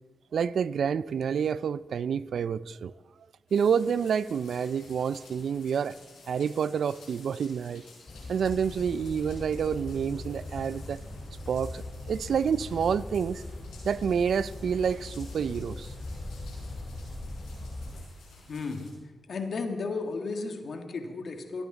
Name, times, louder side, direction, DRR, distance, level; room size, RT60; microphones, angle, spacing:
voice 1, 0.3-2.9 3.5-6.0 6.3-7.8 8.3-11.0 11.5-13.4 13.8-15.9, right 7 dB, 75° right, 0.4 m, -28 dB
sound 1, 3.5-18.9, left 3 dB, 90° left, 5.8 m, -54 dB
sound 2, 8.1-18.0, left 2 dB, 45° left, 4.4 m, -40 dB
voice 2, 18.5-18.9 19.3-21.7, left 4 dB, 65° left, 1.9 m, -34 dB
24.5 x 9.9 x 4.0 m
supercardioid pair, 40°, 0 cm